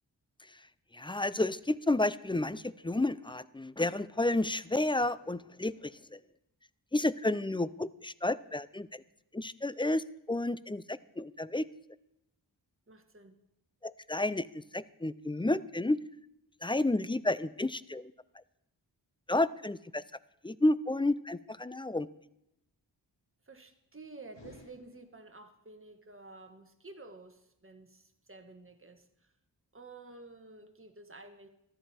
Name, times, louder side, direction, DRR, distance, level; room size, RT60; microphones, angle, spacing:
voice 1, 0.9-6.2 6.9-9.0 9.3-11.7 13.8-16.0 16.6-18.1 19.3-20.0 20.4-22.1, left 2 dB, 10° left, 17 dB, 0.4 m, -31 dB
voice 2, 12.9-13.3 23.5-29.1 29.7-31.5, right 3 dB, 30° right, 6 dB, 1.5 m, -51 dB
sound 1, 24.3-25.6, left 2 dB, 80° left, 2.1 m, -56 dB
13.5 x 10.5 x 4.3 m, 0.82 s
cardioid pair, 45°, 43 cm